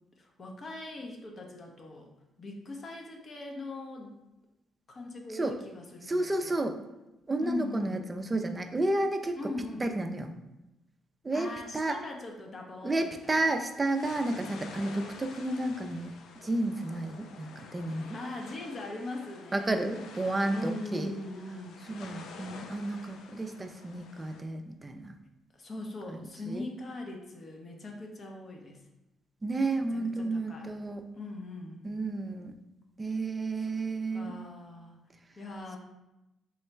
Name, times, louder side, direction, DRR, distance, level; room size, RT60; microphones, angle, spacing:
voice 1, 0.2-2.1 2.4-4.2 4.9-6.6 7.4-8.0 9.4-9.8 11.3-13.4 18.1-19.8 20.5-21.8 25.6-28.8 29.9-30.7 31.1-31.9 33.6-33.7 34.1-35.0 35.4-35.8, left 2 dB, 40° left, 1 dB, 0.7 m, -40 dB
voice 2, 6.1-6.8 7.3-9.4 9.8-10.3 11.2-11.5 11.7-12.0 12.8-16.1 16.4-18.2 19.5-21.1 21.9-25.1 26.1-26.6 29.4-31.0 31.8-32.6 33.0-34.3, right 2 dB, 20° right, 6 dB, 0.4 m, -31 dB
sound 1, 13.0-24.4, left 5 dB, 80° left, 0.4 m, -49 dB
3.8 x 2.1 x 4.4 m, 0.95 s
cardioid pair, 90°, 0 cm